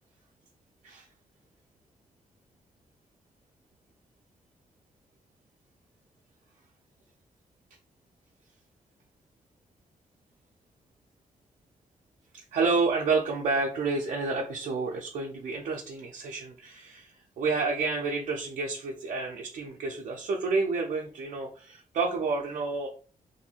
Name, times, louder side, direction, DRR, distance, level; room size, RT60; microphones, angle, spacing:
voice 1, 12.3-17.1 17.4-22.9, right 4 dB, 70° right, 0 dB, 0.4 m, -29 dB
2.6 x 2.4 x 2.7 m, 0.39 s
wide cardioid pair, 160°, 13 cm